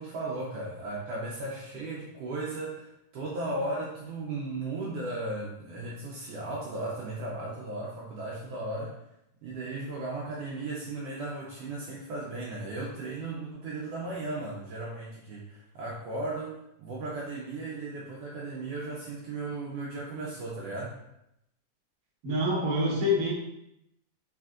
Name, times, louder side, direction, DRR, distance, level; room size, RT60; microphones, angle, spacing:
voice 1, 0.0-9.0 9.4-20.9, right 2 dB, 90° right, -5 dB, 1.3 m, -36 dB
voice 2, 22.2-23.3, left 1 dB, 60° right, -6 dB, 0.9 m, -26 dB
4.2 x 3.5 x 2.3 m, 0.83 s
omnidirectional pair, 3.5 m